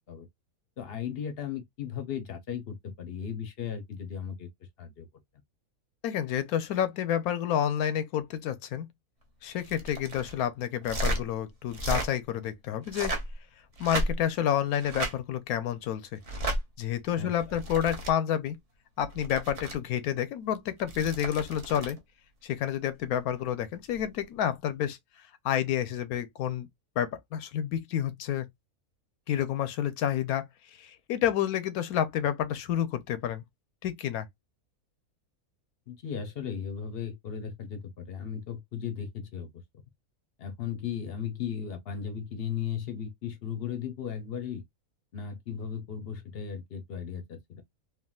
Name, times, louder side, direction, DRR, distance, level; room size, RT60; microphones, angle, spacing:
voice 1, 0.8-4.5 4.8-5.1 17.2-17.6 35.9-39.5 40.4-44.6 45.1-47.6, left 8 dB, 55° left, 0.7 m, -36 dB
voice 2, 6.0-8.9 9.4-13.2 13.8-16.2 16.8-18.6 19.0-22.0 22.4-25.0 25.4-26.7 27.0-28.5 29.3-30.5 30.8-33.4 33.8-34.3, left 10 dB, 80° left, 1.0 m, -29 dB
sound 1, 9.6-10.3 10.8-11.2 11.7-12.1 12.8-13.3 13.8-14.4 14.8-15.1 16.2-16.6 17.4-18.1 19.0-19.7 20.8-22.0 23.8-24.0, right 1 dB, 35° right, 0.6 m, -33 dB
3.5 x 2.2 x 2.2 m
omnidirectional pair, 1.6 m